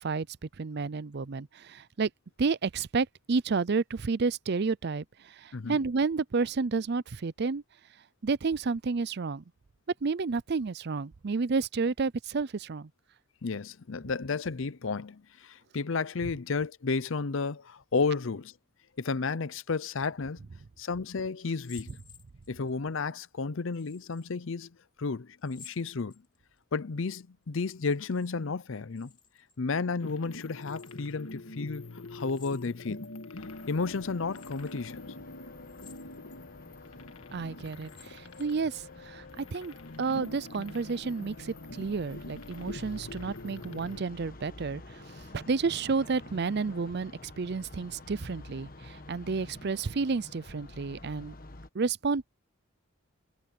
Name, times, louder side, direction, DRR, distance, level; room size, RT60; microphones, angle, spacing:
voice 1, 0.0-2.1 2.4-7.6 8.2-9.4 10.0-12.9 37.3-45.0 45.3-51.3 51.7-52.3, right 4 dB, 50° right, 0.5 m, -31 dB
voice 2, 13.4-18.5 19.0-20.4 20.8-22.0 22.5-26.1 26.7-29.1 29.6-31.8 32.1-33.1 33.7-35.1, left 4 dB, 65° left, 0.6 m, -32 dB
sound 1, 21.5-22.7 23.7-24.3 25.4-26.6 27.6-28.3 28.6-29.6 30.6-31.2 32.3-33.1 33.6-33.7 34.3-34.8 35.6-36.4 36.9-37.0 37.7-38.7, left 8 dB, 25° left, 3.8 m, -55 dB
sound 2, 30.0-44.0, left 2 dB, 85° left, 1.8 m, -45 dB
sound 3, 33.4-51.7, left 2 dB, 45° left, 1.3 m, -49 dB
head